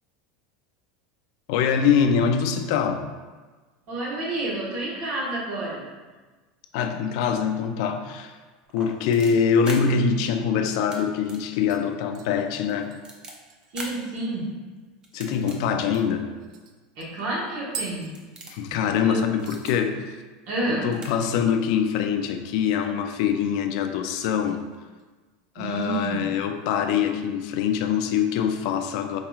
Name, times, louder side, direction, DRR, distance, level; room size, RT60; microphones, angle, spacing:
voice 1, 1.5-3.1 6.7-8.4 8.7-12.9 15.1-16.3 18.5-20.0 20.7-24.6 25.6-29.2, left 7 dB, 65° left, 6 dB, 0.4 m, -24 dB
voice 2, 3.9-5.9 13.7-14.5 17.0-18.2 18.7-19.2 20.5-20.9 25.5-26.3, right 2 dB, 55° right, -5 dB, 1.3 m, -29 dB
sound 1, 8.6-9.8 10.7-11.0 11.2-11.4 11.8-11.9 12.5-13.3 13.7-13.9 15.0-15.6 16.2-16.3 17.2-17.3 17.7-17.9 18.1-18.6 19.3-19.7 20.6-20.7 20.9-21.1 21.3-21.4, right 2 dB, 25° right, 0.6 m, -40 dB
sound 2, 11.7-14.5 14.9-15.0 15.3-15.5 15.9-18.9 19.2-19.7 20.0-20.4 20.7-20.8 22.9-23.5 23.9-24.6 25.0-25.3 25.8-26.7 27.1-27.2, right 5 dB, 85° right, 0.4 m, -44 dB
4.6 x 2.8 x 2.4 m, 1.3 s
supercardioid pair, 135°, 4 cm